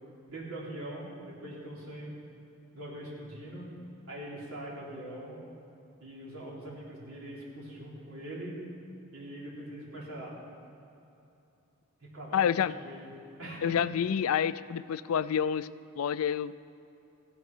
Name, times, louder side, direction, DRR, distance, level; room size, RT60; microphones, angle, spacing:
voice 1, 0.3-2.1 2.7-3.7 4.1-5.4 6.0-8.6 9.1-10.5 12.0-13.1 13.4-13.8, right 1 dB, 75° right, -5 dB, 3.8 m, -42 dB
voice 2, 12.3-12.7 13.6-15.7 16.0-16.5, left 8 dB, 75° left, 16 dB, 0.4 m, -28 dB
15.0 x 10.5 x 6.2 m, 2.8 s
head